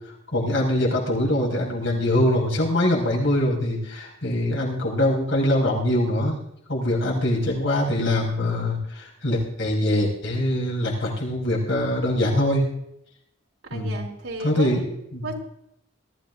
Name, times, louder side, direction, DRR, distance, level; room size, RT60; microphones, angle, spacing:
voice 1, 0.3-6.4 6.7-12.6 13.7-14.0 14.4-14.8 15.1-15.3, left 1 dB, 70° left, -2 dB, 5.9 m, -23 dB
voice 2, 13.7-15.3, right 2 dB, 90° right, 0 dB, 3.6 m, -34 dB
21.5 x 14.0 x 2.7 m, 0.77 s
head